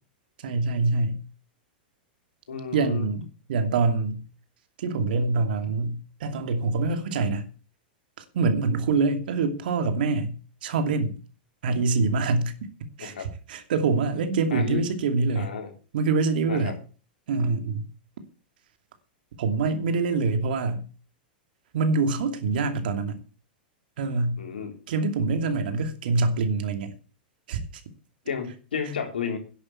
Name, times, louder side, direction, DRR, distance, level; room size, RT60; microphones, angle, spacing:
voice 1, 0.4-1.2 2.7-4.2 4.8-7.5 8.3-11.2 11.6-12.5 12.8-15.6 15.9-16.7 17.3-17.9 19.4-20.9 21.7-23.2 24.0-24.4 24.9-26.9 27.5-27.6, right 4 dB, 70° right, 2.7 m, -25 dB
voice 2, 2.5-3.1 13.0-13.3 14.5-14.8 15.4-15.7 16.5-16.7 24.4-24.7 28.3-29.4, left 6 dB, 85° left, 4.1 m, -32 dB
11.0 x 8.1 x 8.7 m
hypercardioid pair, 115°, 5 cm